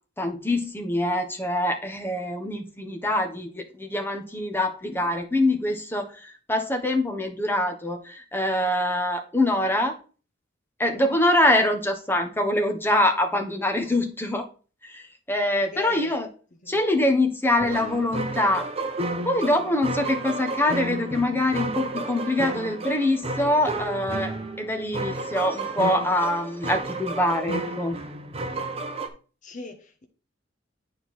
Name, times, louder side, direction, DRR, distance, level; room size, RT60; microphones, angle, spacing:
voice 1, 0.2-10.0 10.8-14.5 14.8-16.3 16.7-18.7 19.2-28.0, left 1 dB, 10° left, 1.2 m, -24 dB
voice 2, 15.6-16.1 16.6-16.8 29.4-30.1, left 3 dB, 40° left, 0.9 m, -40 dB
sound 1, 17.6-29.1, right 2 dB, 30° right, 0.9 m, -32 dB
9.1 x 4.4 x 4.2 m
head